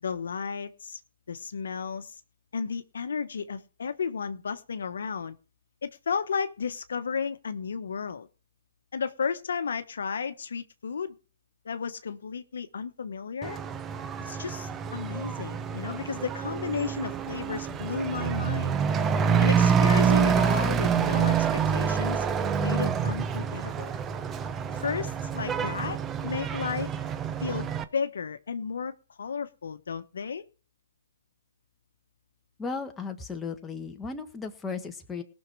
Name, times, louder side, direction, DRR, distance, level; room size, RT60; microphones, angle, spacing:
voice 1, 0.0-1.0 1.3-2.1 2.5-5.4 5.8-8.3 8.9-11.2 11.6-13.6 14.2-18.8 19.4-22.2 22.6-23.9 24.8-26.9 27.4-28.9 29.2-30.4, left 6 dB, 70° left, 10 dB, 1.1 m, -33 dB
Truck / Accelerating revving vroom, 13.4-27.8, right 7 dB, 15° right, 0.8 m, -27 dB
voice 2, 32.6-35.2, left 4 dB, 10° left, 4 dB, 1.5 m, -35 dB
19.0 x 6.4 x 4.7 m, 0.37 s
hypercardioid pair, 140°, 0 cm